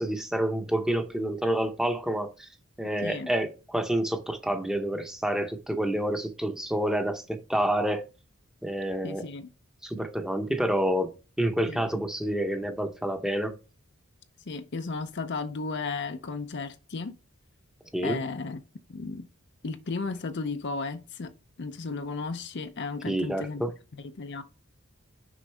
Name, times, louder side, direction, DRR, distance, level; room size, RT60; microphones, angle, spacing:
voice 1, 0.0-2.5 2.8-8.0 8.6-9.3 9.8-13.5 17.9-18.2 23.1-23.7, right 1 dB, 5° right, 0.8 m, -28 dB
voice 2, 3.0-3.3 9.0-9.5 11.7-12.0 14.5-17.1 18.0-18.6 18.9-19.3 19.6-21.3 21.6-23.6 24.0-24.4, left 4 dB, 55° left, 0.6 m, -34 dB
6.3 x 5.2 x 3.4 m
head